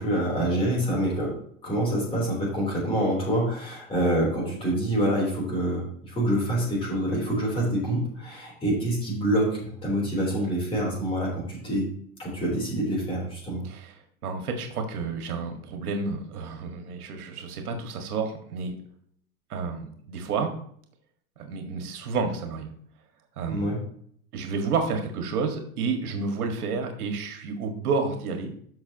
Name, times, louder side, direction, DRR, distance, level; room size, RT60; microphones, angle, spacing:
voice 1, 0.0-1.3 1.6-11.9 12.2-13.6 23.5-23.8, right 1 dB, 10° left, -4 dB, 3.6 m, -26 dB
voice 2, 14.2-18.8 19.5-20.5 21.4-22.7 23.4-23.7 24.3-28.5, right 4 dB, 85° right, 4 dB, 1.9 m, -30 dB
13.5 x 5.9 x 3.0 m, 0.63 s
supercardioid pair, 160°, 43 cm